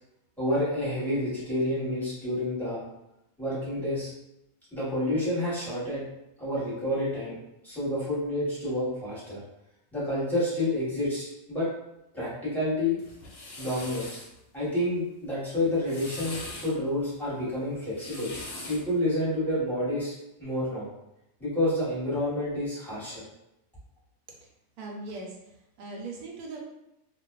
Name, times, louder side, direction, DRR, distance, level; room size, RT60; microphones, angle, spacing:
voice 1, 0.4-2.8 3.4-4.1 4.7-6.0 6.4-7.4 7.6-9.4 9.9-11.7 12.1-13.0 13.6-14.2 14.5-18.3 18.7-20.1 20.4-20.9 21.4-23.2, left 1 dB, ahead, -10 dB, 0.9 m, -29 dB
sound 1, 13.0-14.3 15.7-16.7 17.8-18.9, left 2 dB, 65° left, 0.8 m, -41 dB
voice 2, 24.8-26.6, right 3 dB, 85° right, -1 dB, 1.1 m, -40 dB
2.5 x 2.3 x 2.3 m, 0.87 s
omnidirectional pair, 1.5 m